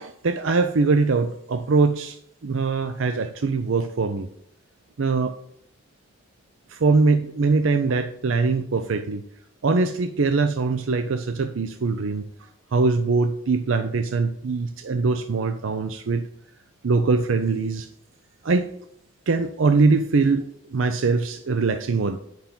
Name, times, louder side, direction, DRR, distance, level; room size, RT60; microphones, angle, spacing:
voice 1, 0.0-4.3 5.0-5.3 6.7-9.2 9.6-12.2 12.7-16.3 16.8-17.9 18.4-18.7 19.3-22.2, right 4 dB, 85° right, 9 dB, 0.6 m, -22 dB
9.3 x 5.7 x 3.7 m, 0.74 s
head